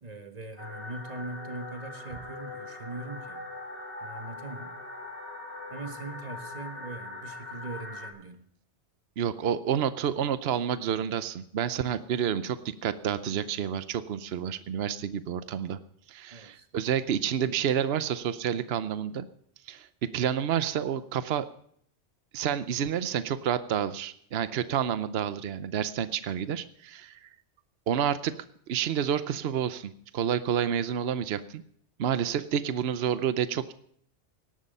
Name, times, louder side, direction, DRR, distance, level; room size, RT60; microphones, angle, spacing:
voice 1, 0.0-3.5 4.0-4.8 5.7-8.4 16.3-16.7, right 2 dB, 35° right, 6 dB, 1.5 m, -41 dB
sound 1, 0.6-8.1, left 2 dB, 55° left, 3.8 m, -41 dB
voice 2, 9.2-15.8 16.1-19.2 19.7-19.9 20.1-21.5 22.3-27.3 27.9-28.3 28.7-31.6 32.0-33.7, right 9 dB, 65° right, 13 dB, 0.9 m, -29 dB
18.0 x 11.5 x 5.5 m, 0.66 s
omnidirectional pair, 1.2 m